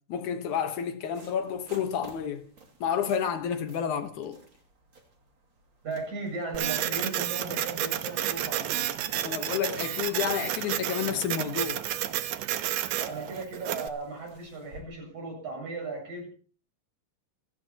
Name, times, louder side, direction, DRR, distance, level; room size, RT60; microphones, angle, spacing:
voice 1, 0.1-2.5 2.8-4.4 9.2-11.8, left 8 dB, 70° left, 2.5 m, -30 dB
sound 1, 1.1-14.8, right 3 dB, 35° right, 3.1 m, -54 dB
voice 2, 5.8-8.9 13.0-16.3, right 3 dB, 60° right, 9.3 m, -36 dB
Printer, 6.5-13.9, right 12 dB, 85° right, 2.6 m, -31 dB
27.5 x 16.0 x 2.9 m
omnidirectional pair, 3.8 m